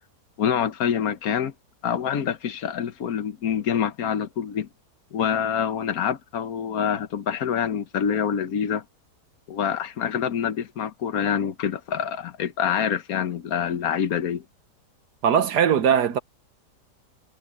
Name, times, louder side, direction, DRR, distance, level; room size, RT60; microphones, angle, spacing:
voice 1, 0.4-1.5 1.8-4.7 5.1-8.8 9.5-14.4, left 8 dB, 60° left, 1.5 m, -26 dB
voice 2, 15.2-16.2, right 8 dB, 75° right, 1.6 m, -20 dB
omnidirectional pair, 1.8 m